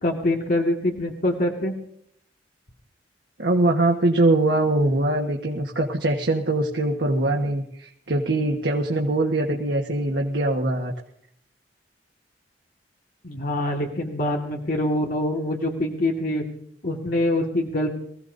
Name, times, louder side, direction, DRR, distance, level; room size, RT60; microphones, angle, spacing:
voice 1, 0.0-1.8 13.2-16.4 16.8-17.9, left 1 dB, 55° left, 0 dB, 1.8 m, -24 dB
voice 2, 3.4-10.9, right 2 dB, 80° right, 0 dB, 1.4 m, -22 dB
24.0 x 16.0 x 2.7 m, 0.68 s
head